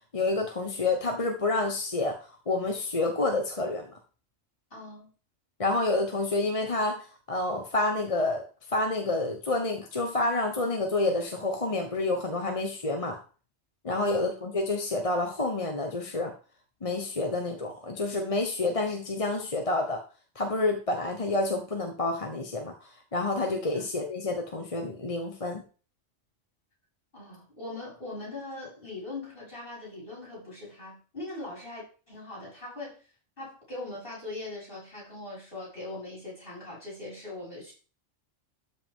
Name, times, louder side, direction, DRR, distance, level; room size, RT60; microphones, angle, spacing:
voice 1, 0.1-2.2 2.5-3.9 5.6-8.4 8.7-13.2 13.8-16.3 16.8-20.0 20.3-22.7 23.1-25.6, left 2 dB, 30° left, 3 dB, 1.1 m, -28 dB
voice 2, 4.7-5.1 14.0-14.2 23.7-23.8 27.1-33.0 33.4-37.7, left 2 dB, 45° left, -6 dB, 6.0 m, -41 dB
12.5 x 5.6 x 3.7 m, 0.37 s
omnidirectional pair, 1.3 m